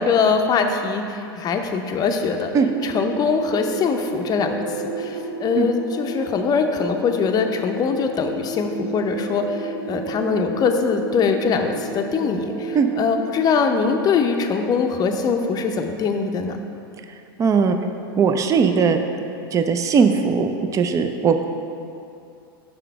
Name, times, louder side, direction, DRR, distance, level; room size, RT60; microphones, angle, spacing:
voice 1, 0.0-2.5 2.8-4.6 5.0-16.6, left 5 dB, 30° left, 5 dB, 0.6 m, -22 dB
sound 1, 1.8-16.1, right 2 dB, 65° right, 1.3 m, -33 dB
voice 2, 17.4-17.8 18.2-19.0 19.5-21.5, right 5 dB, 25° right, 7 dB, 0.5 m, -18 dB
5.8 x 5.1 x 4.6 m, 2.5 s
hypercardioid pair, 95°, 13 cm